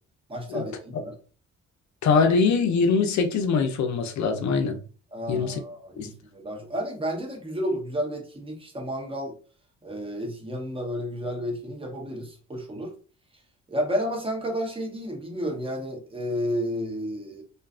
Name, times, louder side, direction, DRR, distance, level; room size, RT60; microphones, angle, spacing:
voice 1, 0.3-1.1 5.1-9.3 9.8-12.9 13.7-17.4, equal, 20° right, 0.8 m, -31 dB
voice 2, 2.0-4.8 5.3-5.6 6.0-6.1, left 5 dB, 70° left, 0.6 m, -22 dB
2.5 x 2.3 x 2.3 m
cardioid pair, 90°, 30 cm